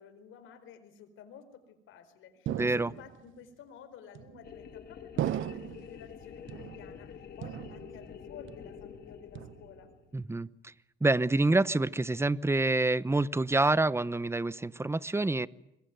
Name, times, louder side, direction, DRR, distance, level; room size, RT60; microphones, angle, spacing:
voice 1, 0.0-9.9, left 7 dB, 85° left, 11 dB, 4.5 m, -52 dB
voice 2, 2.5-2.9 10.1-10.7 11.0-15.5, right 2 dB, 15° right, 18 dB, 0.9 m, -27 dB
sound 1, 2.5-3.3 4.1-4.7 5.2-6.0 6.5-7.1 7.4-8.2 8.5-8.9 9.3-9.9, right 12 dB, 75° right, 1.2 m, -37 dB
sound 2, 4.4-10.2, left 7 dB, 55° left, 2.4 m, -47 dB
25.5 x 21.5 x 9.3 m, 0.84 s
cardioid pair, 90°, 20 cm